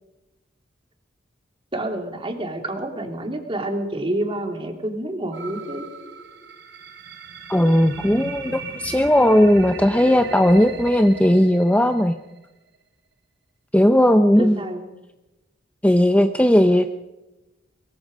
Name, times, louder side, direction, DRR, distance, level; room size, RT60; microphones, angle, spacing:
voice 1, 1.7-5.8 14.4-14.8, right 1 dB, 25° right, 4 dB, 2.8 m, -28 dB
sound 1, 5.3-12.4, right 4 dB, 65° right, 3.0 m, -37 dB
voice 2, 7.5-12.1 13.7-14.6 15.8-16.9, equal, 5° left, 7 dB, 0.6 m, -17 dB
23.0 x 22.5 x 5.2 m, 1.0 s
head